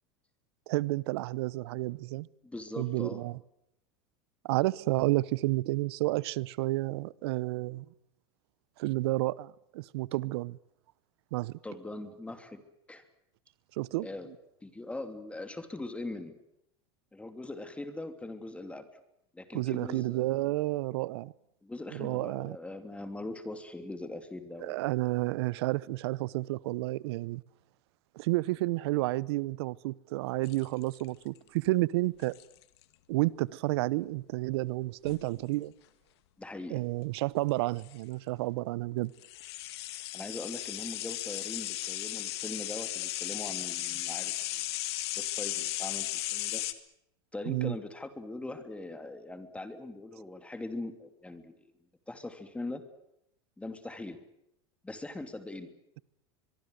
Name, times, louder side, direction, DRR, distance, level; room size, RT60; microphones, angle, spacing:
voice 1, 0.7-2.3 2.8-3.4 4.4-7.8 8.8-10.6 11.3-11.5 13.8-14.1 19.5-21.3 21.9-22.6 24.6-27.4 28.2-32.3 33.1-35.7 36.7-39.1 47.4-47.8, right 19 dB, 75° right, 0.8 m, -31 dB
voice 2, 2.4-3.2 11.6-12.6 12.9-13.0 14.0-14.3 14.6-16.4 17.1-18.9 19.3-20.3 21.6-24.8 36.4-36.9 39.9-44.7 45.2-46.7 47.3-51.5 52.1-52.8 53.6-54.2 54.8-55.7, left 2 dB, 10° left, 2.9 m, -41 dB
sound 1, 30.5-31.2 32.2-32.6 35.0-35.3 37.5-37.6 37.8-37.9 39.2-46.7, left 16 dB, 75° left, 2.1 m, -36 dB
24.0 x 22.5 x 8.0 m
supercardioid pair, 110°, 14 cm